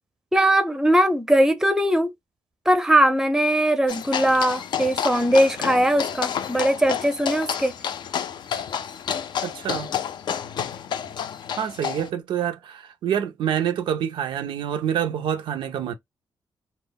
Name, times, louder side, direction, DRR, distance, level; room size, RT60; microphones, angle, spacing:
voice 1, 0.3-2.1 2.7-7.7, right 1 dB, 5° right, 0.5 m, -20 dB
sound 1, 3.9-12.1, left 8 dB, 65° left, 0.3 m, -30 dB
voice 2, 9.4-9.9 11.6-15.9, right 9 dB, 85° right, 0.4 m, -27 dB
2.0 x 2.0 x 3.3 m
cardioid pair, 110°, 8 cm